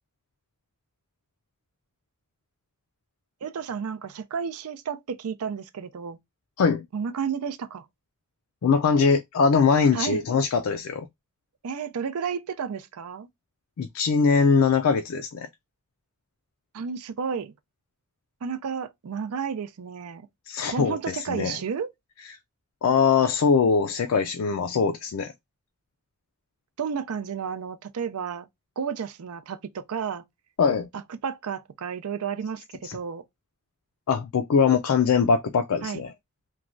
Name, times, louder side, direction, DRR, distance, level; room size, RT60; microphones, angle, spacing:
voice 1, 3.4-6.2 6.9-7.9 9.9-10.2 11.6-13.3 16.7-17.5 18.4-20.3 20.7-21.9 26.8-28.5 28.8-30.2 30.9-33.2 35.8-36.1, right 6 dB, 80° right, 0.4 m, -32 dB
voice 2, 8.6-11.1 13.8-15.5 20.5-21.6 22.8-25.3 30.6-30.9 32.8-33.0 34.1-36.1, left 5 dB, 70° left, 0.4 m, -22 dB
3.0 x 2.2 x 2.4 m
head